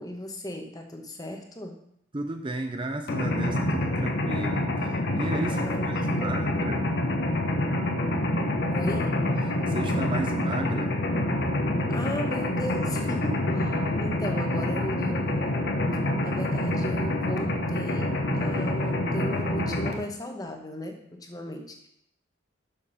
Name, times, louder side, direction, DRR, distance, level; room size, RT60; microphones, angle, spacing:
voice 1, 0.0-1.8 5.5-6.4 8.6-9.2 11.9-15.8 16.2-21.9, left 1 dB, 20° left, 4 dB, 1.1 m, -36 dB
voice 2, 2.1-6.9 9.7-11.0, right 2 dB, 25° right, 6 dB, 0.5 m, -34 dB
Mechanisms, 3.1-19.9, left 1 dB, 55° left, 1.2 m, -27 dB
7.1 x 6.9 x 5.5 m, 0.72 s
head